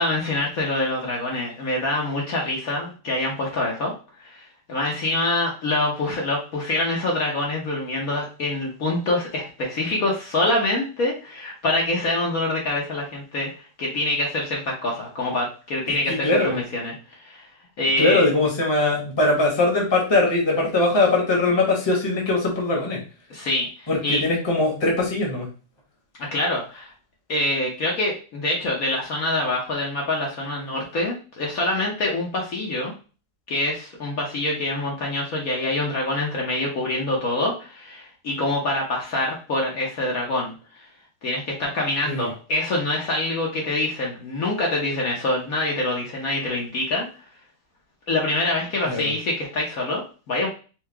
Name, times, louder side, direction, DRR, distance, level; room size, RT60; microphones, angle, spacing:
voice 1, 0.0-3.9 4.2-13.5 13.8-17.5 17.8-18.3 23.3-24.2 26.3-26.9 27.3-32.9 33.5-40.9 41.2-47.1 48.1-50.5, left 2 dB, 55° left, -2 dB, 1.3 m, -25 dB
voice 2, 16.1-16.6 18.0-23.0 23.9-25.5 42.0-42.3 48.8-49.1, left 2 dB, 15° left, -1 dB, 1.0 m, -21 dB
4.7 x 2.3 x 3.4 m, 0.35 s
omnidirectional pair, 1.9 m